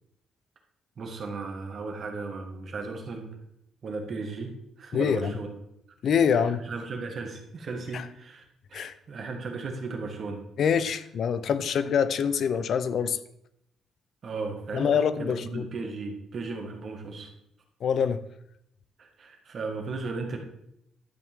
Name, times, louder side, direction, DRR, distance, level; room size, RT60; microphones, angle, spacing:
voice 1, 1.0-3.3 3.8-5.5 6.3-8.4 8.7-10.4 14.2-17.3 19.0-20.4, right 3 dB, 45° right, 1.8 m, -36 dB
voice 2, 4.9-5.3 6.0-6.7 7.9-8.1 8.7-8.9 10.6-13.2 14.7-15.6 17.8-18.2, left 7 dB, 55° left, 0.6 m, -25 dB
12.0 x 7.5 x 3.7 m
cardioid pair, 140°, 0 cm